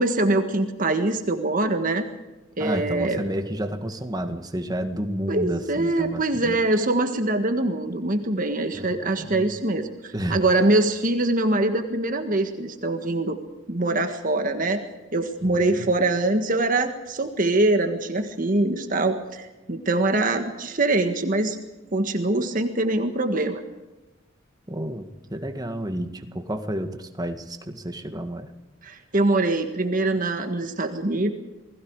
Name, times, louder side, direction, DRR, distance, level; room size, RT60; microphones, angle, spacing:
voice 1, 0.0-2.1 2.6-3.2 5.3-13.4 13.7-14.8 15.1-21.6 21.9-23.6 28.8-31.3, right 2 dB, 45° right, 6 dB, 1.7 m, -23 dB
voice 2, 2.6-6.6 8.7-8.9 9.2-9.4 10.1-10.4 15.4-15.8 24.7-28.5, right 1 dB, 20° right, 6 dB, 1.8 m, -30 dB
28.5 x 20.5 x 4.9 m, 1.1 s
head